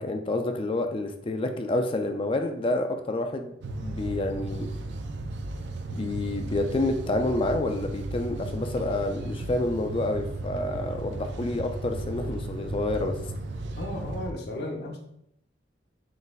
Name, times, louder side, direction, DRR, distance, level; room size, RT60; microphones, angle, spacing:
voice 1, 0.0-4.7 5.9-13.2, left 2 dB, 30° left, 6 dB, 0.4 m, -28 dB
sound 1, 3.6-14.3, right 2 dB, 70° right, 0.4 m, -35 dB
voice 2, 13.8-15.0, left 1 dB, 60° left, 2 dB, 0.7 m, -34 dB
3.9 x 3.8 x 2.4 m, 0.74 s
head